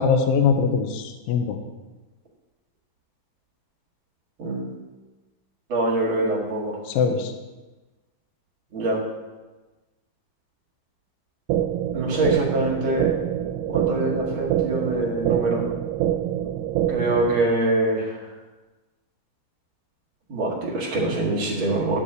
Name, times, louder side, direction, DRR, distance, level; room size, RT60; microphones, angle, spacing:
voice 1, 0.0-1.6 6.9-7.3, left 5 dB, 75° left, 5 dB, 2.2 m, -22 dB
voice 2, 4.4-4.7 5.7-6.8 8.7-9.0 11.9-13.1 13.7-15.6 16.9-18.2 20.3-22.0, right 2 dB, 40° right, -3 dB, 1.9 m, -24 dB
sound 1, 11.5-17.5, right 11 dB, 90° right, 2.7 m, -26 dB
12.0 x 4.3 x 8.0 m, 1.2 s
omnidirectional pair, 4.6 m